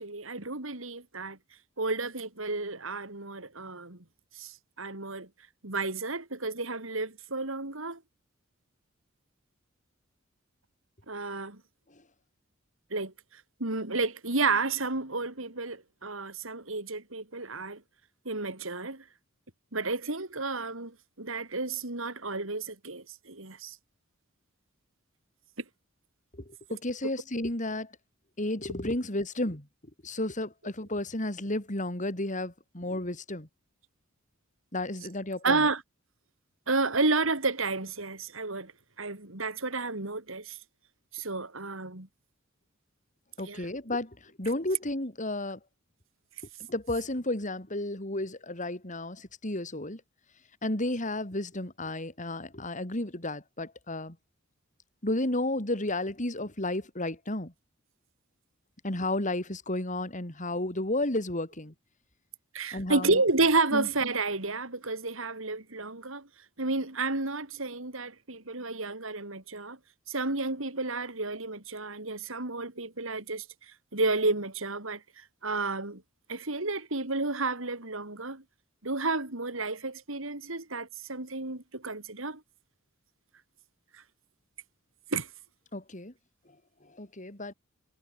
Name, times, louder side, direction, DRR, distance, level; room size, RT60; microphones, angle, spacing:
voice 1, 0.0-1.4 1.8-4.0 4.4-5.3 5.6-8.0 11.1-11.6 12.9-13.1 13.6-17.8 18.3-19.0 19.7-23.8 26.7-26.8 35.4-35.8 36.7-38.7 39.0-40.6 41.1-42.1 43.4-43.7 62.5-66.3 66.6-69.8 70.1-73.5 73.9-76.0 76.3-78.4 78.8-82.4 85.1-85.3, right 3 dB, 70° right, 3.6 m, -31 dB
voice 2, 26.7-27.9 28.4-29.7 30.0-33.5 34.7-35.6 43.4-45.6 46.7-50.0 50.6-54.2 55.0-57.5 58.8-61.7 62.7-63.2 63.7-63.9 85.7-86.1 87.0-87.5, left 1 dB, 35° left, 3.9 m, -32 dB
head